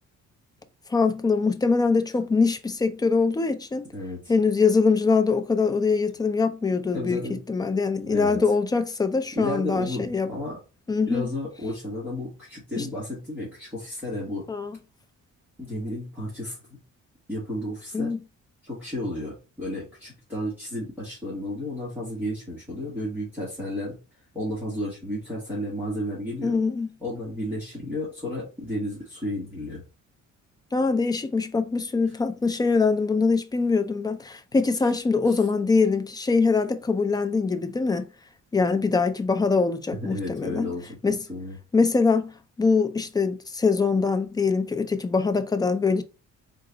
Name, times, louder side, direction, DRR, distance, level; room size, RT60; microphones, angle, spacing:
voice 1, 0.9-3.9 4.3-7.2 7.5-10.3 10.9-11.3 12.7-12.9 14.5-14.8 17.9-18.2 26.4-26.9 30.7-38.1 38.5-40.7 41.0-41.2 41.7-42.3 42.6-46.0, left 4 dB, 15° left, 0.3 m, -23 dB
voice 2, 6.9-7.4 8.0-8.4 9.3-10.6 11.1-14.5 15.6-16.8 17.3-18.1 18.6-24.0 24.3-26.6 27.0-29.8 40.0-41.6, left 1 dB, 5° right, 1.4 m, -32 dB
3.8 x 2.4 x 3.8 m
cardioid pair, 145°, 31 cm